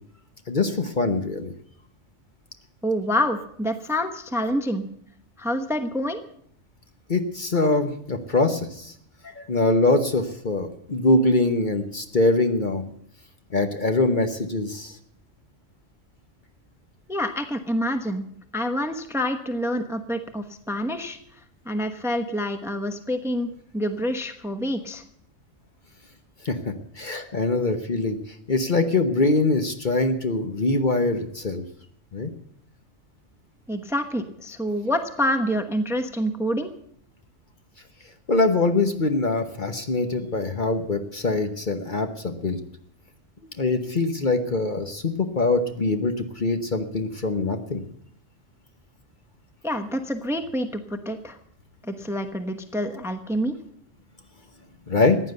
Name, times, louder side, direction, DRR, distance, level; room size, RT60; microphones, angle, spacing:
voice 1, 0.5-1.5 7.1-8.9 9.2-12.8 13.5-15.0 26.4-28.2 28.5-31.6 32.1-32.3 38.3-42.6 43.6-47.8 54.9-55.2, left 2 dB, 40° left, 7 dB, 1.1 m, -23 dB
voice 2, 2.8-4.8 5.4-6.2 17.1-18.2 18.5-21.2 21.6-25.0 33.7-36.7 49.6-51.4 51.8-53.6, equal, ahead, 8 dB, 0.9 m, -27 dB
15.0 x 9.9 x 7.8 m, 0.68 s
omnidirectional pair, 1.3 m